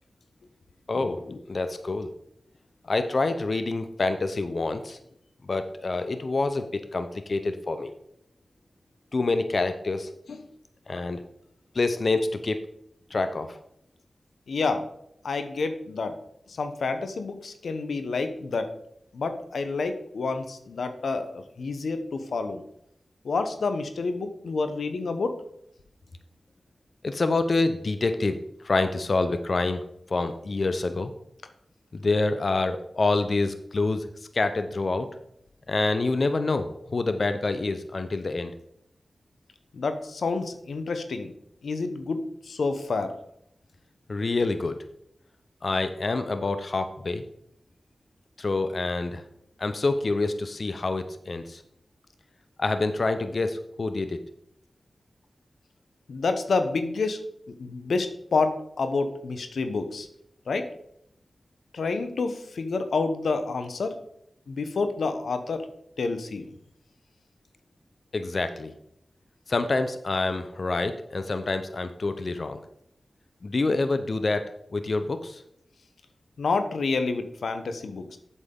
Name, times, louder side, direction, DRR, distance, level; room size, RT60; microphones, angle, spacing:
voice 1, 0.9-2.1 2.9-5.0 5.5-7.9 9.1-10.1 10.9-11.2 11.7-12.6 13.1-13.6 27.0-28.4 28.6-29.8 30.1-31.1 31.9-34.0 34.3-35.1 35.7-38.5 44.1-44.8 45.6-47.2 48.4-49.2 49.6-51.6 52.6-54.2 68.1-68.7 69.5-72.6 73.4-75.4, left 3 dB, 60° left, 9 dB, 0.7 m, -27 dB
voice 2, 14.5-14.9 15.2-16.1 16.5-18.7 19.1-22.6 23.2-25.4 39.7-41.3 41.6-43.1 56.1-57.2 57.6-60.1 60.5-60.7 61.7-64.0 64.5-65.7 66.0-66.5 76.4-78.2, left 4 dB, 90° left, 8 dB, 0.8 m, -28 dB
8.0 x 7.3 x 3.7 m, 0.73 s
cardioid pair, 55°, 0 cm